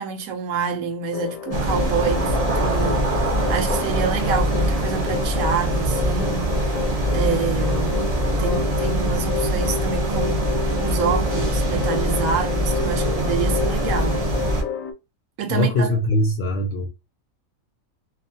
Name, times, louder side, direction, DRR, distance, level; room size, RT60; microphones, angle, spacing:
voice 1, 0.0-6.7 7.1-8.1 8.4-10.5 10.7-14.3 15.4-15.9, right 5 dB, 75° right, 1.0 m, -27 dB
sound 1, 1.1-14.9, left 7 dB, 85° left, 1.1 m, -30 dB
sound 2, 1.5-14.6, right 1 dB, 45° right, 0.5 m, -23 dB
voice 2, 15.5-16.9, left 1 dB, 65° left, 0.6 m, -21 dB
2.6 x 2.4 x 2.6 m
omnidirectional pair, 1.5 m